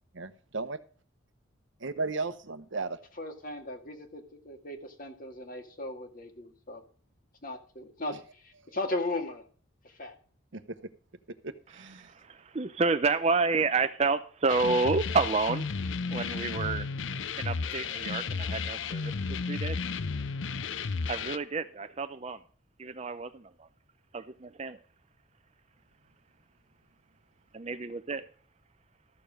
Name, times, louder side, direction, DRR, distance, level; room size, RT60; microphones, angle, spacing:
voice 1, 0.1-0.8 1.8-3.0 10.5-10.6 11.4-12.1, right 3 dB, 60° right, 11 dB, 0.9 m, -35 dB
voice 2, 3.2-6.8 7.4-9.4 9.8-10.1, left 2 dB, 40° left, 5 dB, 1.9 m, -37 dB
voice 3, 12.0-15.7 16.1-16.9 17.4-19.1 19.5-19.8 21.1-22.4 22.8-23.7 24.1-24.8 27.5-28.2, right 4 dB, 30° right, 11 dB, 0.5 m, -29 dB
sound 1, 14.5-21.4, left 5 dB, 60° left, 0.6 m, -33 dB
13.5 x 6.8 x 5.1 m, 0.42 s
head